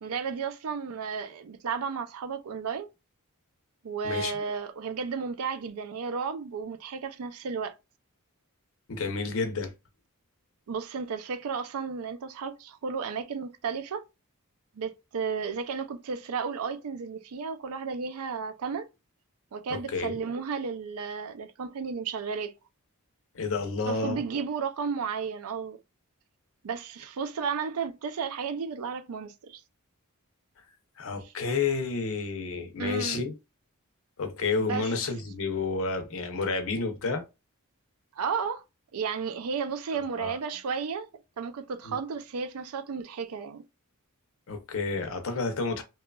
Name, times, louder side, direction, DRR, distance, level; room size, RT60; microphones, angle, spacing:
voice 1, 0.0-2.9 3.8-7.8 10.7-14.0 14.7-18.9 19.5-22.5 23.9-25.8 26.6-29.6 32.8-33.2 34.6-34.9 38.1-38.6 38.9-41.1 41.4-43.6, right 5 dB, 70° right, 0.4 m, -33 dB
voice 2, 8.9-9.7 19.7-20.2 23.3-24.2 31.0-33.3 34.2-37.2 40.2-40.4 41.8-42.0 44.5-45.8, left 4 dB, 65° left, 0.6 m, -30 dB
2.8 x 2.3 x 2.3 m
head